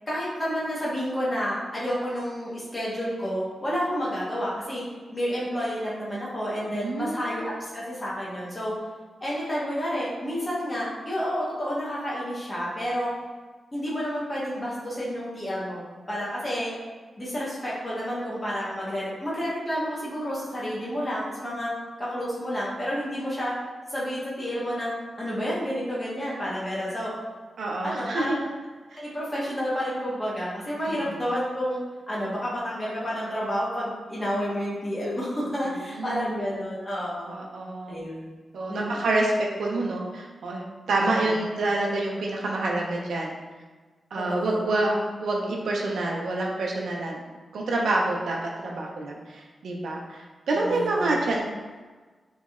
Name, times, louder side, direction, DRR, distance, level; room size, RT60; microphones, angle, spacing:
voice 1, 0.1-4.8 5.1-8.7 9.2-13.1 13.7-16.7 17.2-21.7 22.0-23.5 23.9-24.9 25.2-27.1 27.8-28.5 29.0-31.8 32.1-37.4 37.9-38.4 38.7-39.0 41.0-41.4 44.3-44.6 50.6-51.1, equal, 25° left, -7 dB, 0.8 m, -30 dB
voice 2, 6.7-7.6 27.6-28.4 28.9-29.0 30.9-31.0 35.9-36.3 37.3-38.0 38.5-39.3 39.6-43.3 44.1-47.2 47.5-51.4, right 2 dB, 90° right, -2 dB, 0.4 m, -27 dB
2.9 x 2.7 x 2.3 m, 1.4 s
wide cardioid pair, 90°, 0 cm